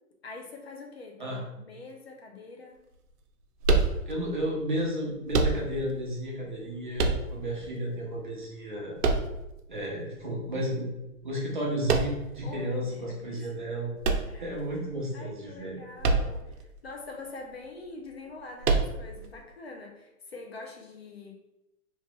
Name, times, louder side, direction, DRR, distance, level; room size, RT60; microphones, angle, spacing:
voice 1, 0.2-2.8 12.4-13.5 14.2-14.5 15.1-21.4, left 3 dB, 45° left, 2 dB, 0.5 m, -44 dB
sound 1, 3.6-4.4 5.3-6.0 7.0-7.7 9.0-9.8 11.9-12.4 14.0-14.9 16.0-16.6 16.8-16.9 18.6-19.3, right 3 dB, 75° right, 0.6 m, -26 dB
voice 2, 4.1-9.0 9.7-10.9 11.2-13.9 14.3-15.7, equal, 35° right, -3 dB, 0.5 m, -32 dB
2.9 x 2.4 x 3.0 m, 0.92 s
hypercardioid pair, 170°, 46 cm